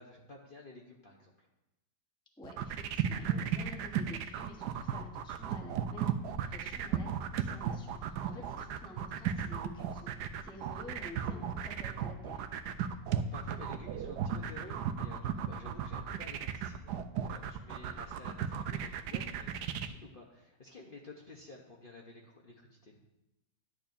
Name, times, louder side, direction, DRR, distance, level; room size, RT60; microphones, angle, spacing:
voice 1, 0.0-1.5 3.3-3.6 8.3-8.7 13.1-17.0 17.3-23.0, left 2 dB, 45° left, -1 dB, 0.8 m, -52 dB
voice 2, 2.4-12.4, left 1 dB, 5° left, 0 dB, 0.7 m, -51 dB
sound 1, 2.4-19.9, right 9 dB, 85° right, 1.1 m, -35 dB
11.0 x 8.6 x 2.6 m, 0.95 s
omnidirectional pair, 1.7 m